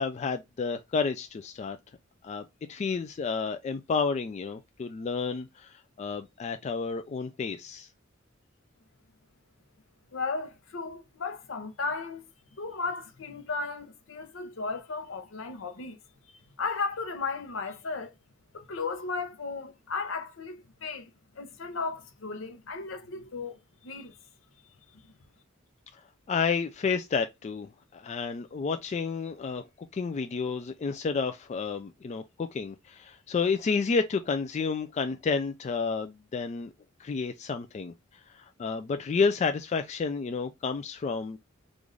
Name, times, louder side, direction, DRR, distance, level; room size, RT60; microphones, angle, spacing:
voice 1, 0.0-1.8 2.2-7.9 26.3-27.7 27.9-36.7 37.0-37.9 38.3-41.4, left 5 dB, 35° left, 0.3 m, -30 dB
voice 2, 10.1-12.2 12.6-16.0 16.6-18.1 18.5-21.1 21.4-24.2, left 4 dB, 70° left, 0.7 m, -35 dB
3.2 x 2.5 x 3.6 m
head